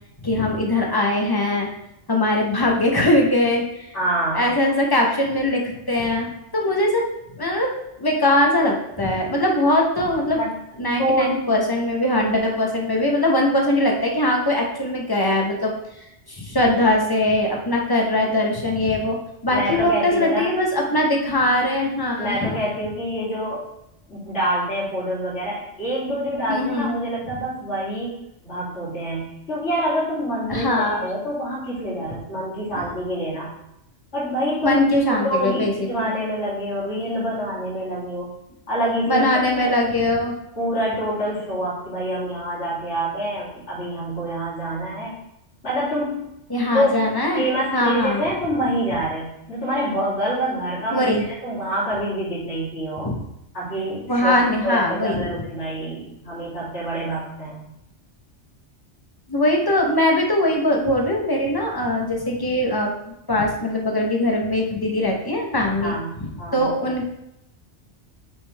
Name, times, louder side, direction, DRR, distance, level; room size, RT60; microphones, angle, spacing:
voice 1, 0.2-1.7 2.1-3.9 4.3-7.1 7.4-7.7 8.0-10.4 10.8-15.7 16.3-19.2 19.4-22.5 26.5-26.9 30.5-31.1 34.6-36.1 39.1-40.3 46.5-47.4 47.7-48.2 50.9-51.2 53.0-53.2 54.1-55.4 59.3-62.9 63.3-67.1, left 1 dB, 20° left, 0 dB, 0.8 m, -21 dB
voice 2, 3.9-4.5 10.3-10.5 11.0-11.4 19.5-20.5 22.2-23.7 24.1-28.1 28.4-33.5 34.1-34.8 35.1-38.3 38.7-39.2 39.6-39.7 40.5-45.1 45.6-46.3 46.7-47.0 47.3-53.1 53.5-57.6 65.8-66.7, right 1 dB, 75° left, -9 dB, 2.9 m, -26 dB
5.6 x 5.2 x 3.3 m, 0.83 s
omnidirectional pair, 1.2 m